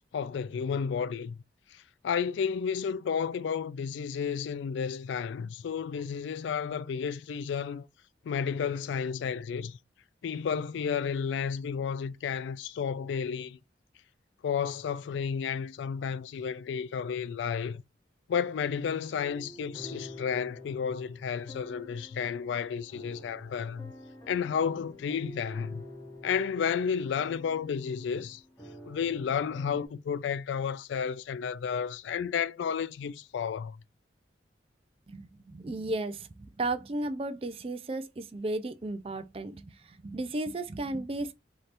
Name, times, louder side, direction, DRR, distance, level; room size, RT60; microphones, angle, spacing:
voice 1, 0.1-1.4 1.7-7.9 8.2-9.8 10.2-13.6 14.4-17.8 18.3-23.9 24.3-25.8 26.2-28.4 28.9-33.8, left 7 dB, 80° left, 0.3 m, -32 dB
sound 1, 19.2-29.9, left 1 dB, 15° left, 0.9 m, -48 dB
voice 2, 35.1-41.3, right 2 dB, 30° right, 0.4 m, -34 dB
3.3 x 2.8 x 2.5 m
head